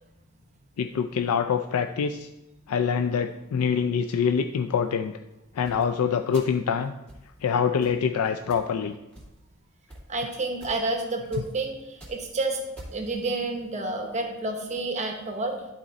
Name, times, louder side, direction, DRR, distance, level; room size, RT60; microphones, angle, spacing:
voice 1, 0.8-2.3 2.7-5.1 5.6-6.9 7.4-8.9, left 6 dB, 80° left, 7 dB, 0.4 m, -25 dB
sound 1, 5.7-5.8 6.3-6.6 7.1-7.3 7.8-8.0 8.5-8.7 9.1-9.5 9.9-10.0 10.6-10.9 11.3-11.5 11.8-12.3 12.8-13.1, right 1 dB, 5° left, 2.3 m, -45 dB
voice 2, 10.1-12.6 12.9-15.6, right 2 dB, 35° right, 3 dB, 1.0 m, -29 dB
11.0 x 4.3 x 4.0 m, 0.97 s
head